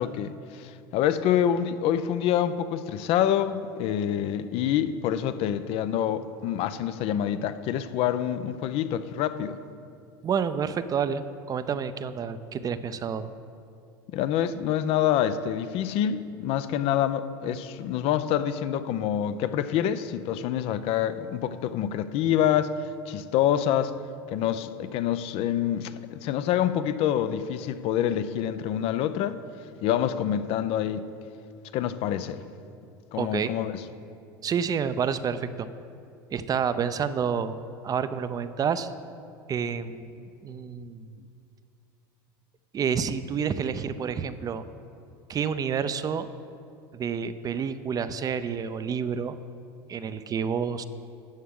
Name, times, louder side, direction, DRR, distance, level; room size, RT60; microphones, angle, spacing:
voice 1, 0.0-9.6 14.1-22.7 23.1-23.9 24.3-29.4 29.8-31.1 31.7-32.4 33.1-33.8, left 10 dB, 55° left, 13 dB, 0.5 m, -26 dB
voice 2, 10.2-13.3 33.2-33.5 34.4-35.7 36.3-37.6 37.8-38.9 39.5-41.1 42.7-44.6 45.3-46.3 46.9-49.4 49.9-50.8, right 7 dB, 30° right, 12 dB, 0.5 m, -29 dB
13.0 x 8.3 x 3.7 m, 2.5 s
hypercardioid pair, 90°, 12 cm